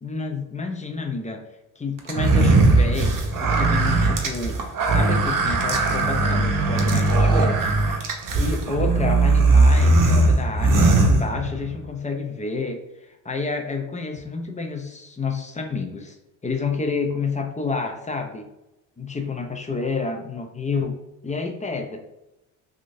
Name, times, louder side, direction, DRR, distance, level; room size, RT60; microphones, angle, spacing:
voice 1, 0.0-1.4 1.8-3.1 3.4-7.7 8.3-12.8 13.2-16.2 16.4-18.4 19.0-21.0 21.2-22.0, left 4 dB, 15° left, 4 dB, 0.4 m, -29 dB
sound 1, 2.1-11.8, right 2 dB, 40° right, 0.8 m, -19 dB
3.5 x 2.5 x 2.6 m, 0.92 s
supercardioid pair, 70°, 48 cm